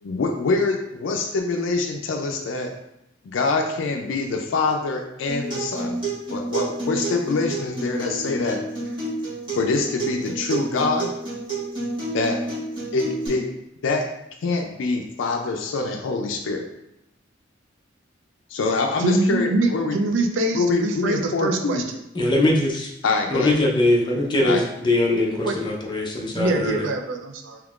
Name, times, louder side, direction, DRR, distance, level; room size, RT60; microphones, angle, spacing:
voice 1, 0.0-2.7 3.2-6.0 6.3-8.6 9.6-11.1 12.1-12.5 12.9-13.5 13.8-14.1 14.4-16.7 18.5-20.0 20.5-21.8 23.0-23.5 24.4-24.6, left 3 dB, 85° left, 2 dB, 0.4 m, -25 dB
Acoustic guitar, 5.3-13.3, right 3 dB, 25° right, 1.4 m, -30 dB
voice 2, 19.0-21.8 25.1-25.6 26.3-27.6, right 2 dB, 75° right, 4 dB, 0.4 m, -24 dB
voice 3, 22.1-22.9 23.3-26.9, left 1 dB, 25° left, -1 dB, 0.5 m, -21 dB
3.5 x 2.9 x 2.4 m, 0.83 s
head